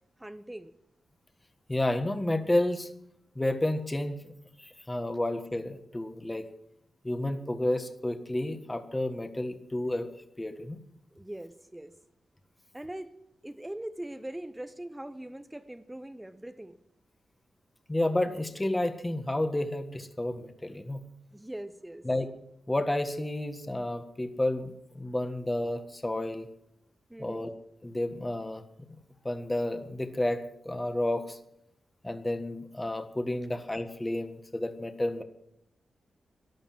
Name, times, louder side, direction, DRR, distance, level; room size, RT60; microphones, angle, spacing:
voice 1, 0.2-0.7 11.1-11.9 12.7-13.1 13.4-16.8 21.3-22.1 27.1-27.4, right 1 dB, 10° right, 10 dB, 0.9 m, -41 dB
voice 2, 1.7-2.9 3.3-4.3 4.6-6.5 7.0-10.1 10.4-10.8 17.9-21.0 22.0-22.3 22.7-26.5 27.2-27.5 27.8-28.6 29.2-31.4 32.0-35.2, left 1 dB, 15° left, 8 dB, 1.6 m, -31 dB
13.5 x 12.0 x 7.4 m, 0.76 s
wide cardioid pair, 110°, 0 cm